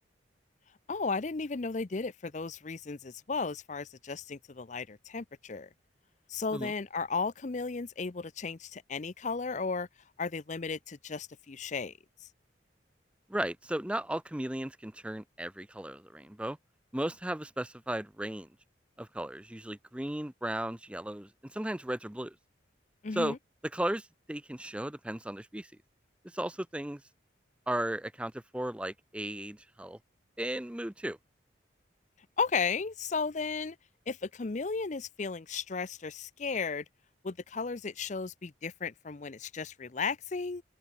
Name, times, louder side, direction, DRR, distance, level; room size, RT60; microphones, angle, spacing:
voice 1, 0.9-5.7 6.3-9.9 10.2-11.9 23.0-23.4 32.4-33.8 34.1-36.8 37.2-40.6, left 4 dB, 40° left, 0.6 m, -34 dB
voice 2, 13.3-16.6 16.9-18.5 19.0-22.4 23.1-23.4 23.7-25.7 26.2-27.0 27.7-30.0 30.4-31.2, right 1 dB, 5° right, 0.5 m, -35 dB
open air
head